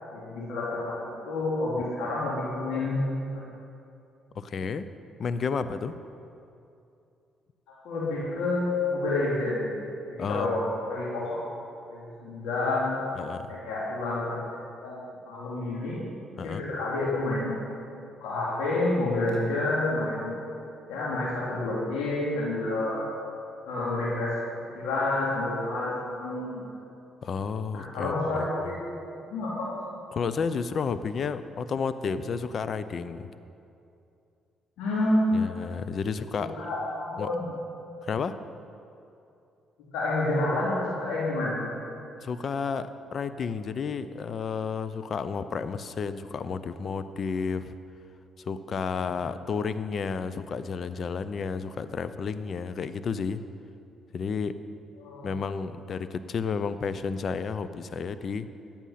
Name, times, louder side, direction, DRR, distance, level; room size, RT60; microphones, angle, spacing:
voice 1, 0.1-3.4 7.7-9.8 10.1-11.4 11.9-13.0 13.5-14.4 14.8-15.0 15.3-16.0 16.4-17.5 18.2-20.3 20.9-23.0 23.7-24.3 24.7-26.6 27.7-28.8 29.3-29.8 34.8-35.5 36.5-37.4 39.9-41.7 55.0-55.3, left 2 dB, 80° left, -6 dB, 2.8 m, -29 dB
voice 2, 4.3-4.9 5.2-5.9 10.2-10.6 13.2-13.5 16.4-16.6 27.2-28.4 30.1-33.3 35.3-36.5 37.2-37.3 38.0-38.3 42.2-47.7 48.5-53.4 54.1-54.5 55.2-58.5, left 5 dB, 55° left, 13 dB, 0.6 m, -31 dB
14.5 x 8.9 x 5.8 m, 2.7 s
supercardioid pair, 55°, 0 cm